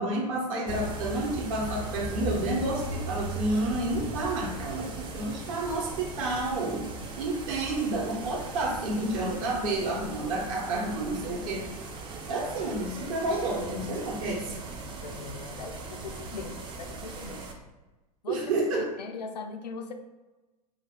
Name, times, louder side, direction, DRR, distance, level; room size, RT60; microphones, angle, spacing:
voice 1, 0.0-6.9 7.2-11.6 12.3-14.5 18.3-18.8, right 2 dB, 55° right, -2 dB, 1.0 m, -30 dB
sound 1, 0.7-17.5, right 2 dB, 25° right, 0.4 m, -38 dB
voice 2, 15.0-17.4 18.2-19.9, left 4 dB, 75° left, 6 dB, 0.4 m, -39 dB
2.5 x 2.1 x 3.7 m, 1.1 s
figure-of-eight pair, 85°, 21 cm